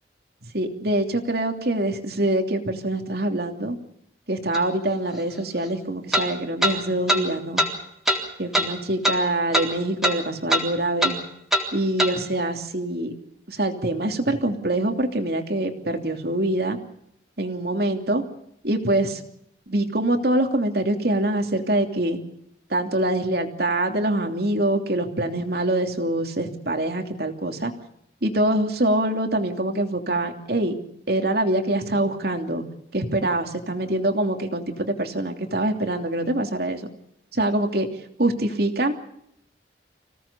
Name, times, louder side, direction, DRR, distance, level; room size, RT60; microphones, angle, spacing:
voice 1, 0.5-3.8 4.3-7.6 8.4-11.2 11.7-13.1 13.5-16.8 17.4-18.2 18.6-19.2 19.7-22.2 22.7-27.7 28.2-30.7 31.1-32.6 32.9-36.9 37.3-37.9 38.2-38.9, right 1 dB, 60° right, 5 dB, 3.0 m, -24 dB
sound 1, 4.5-4.6 6.1-6.3 6.6-6.8 7.1-7.2 7.6-7.7 8.1-8.2 8.5-8.7 9.0-9.2 9.5-9.7 10.0-10.2 10.5-10.7 11.0-11.2 11.5-11.7 12.0-12.1, equal, ahead, 3.7 m, -21 dB
26.0 x 17.5 x 7.0 m, 0.75 s
head